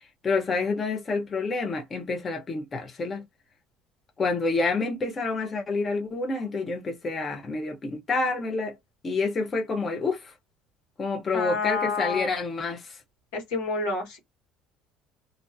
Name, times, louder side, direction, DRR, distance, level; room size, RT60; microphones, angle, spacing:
voice 1, 0.2-3.2 4.2-8.8 9.0-10.3 11.0-13.0, left 3 dB, 35° left, 0.7 m, -28 dB
voice 2, 11.3-12.3 13.3-14.2, left 4 dB, 85° left, 1.2 m, -29 dB
2.5 x 2.2 x 2.6 m
supercardioid pair, 75°, 0 cm